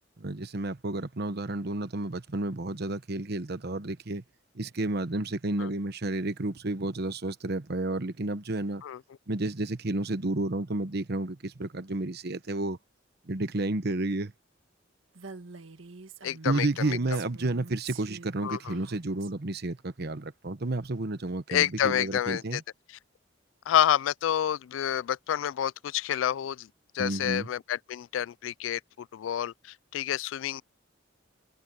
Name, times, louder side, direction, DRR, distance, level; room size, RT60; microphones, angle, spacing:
voice 1, 0.2-4.2 4.5-8.8 9.3-12.8 13.3-14.3 16.4-22.6 27.0-27.5, right 2 dB, 55° right, 1.1 m, -31 dB
Female speech woman speaking, 15.2-19.3, right 4 dB, 90° right, 1.7 m, -46 dB
voice 2, 16.2-17.0 18.4-18.8 21.5-22.6 22.9-23.0 23.7-26.7 26.9-30.6, left 10 dB, 75° left, 0.3 m, -29 dB
head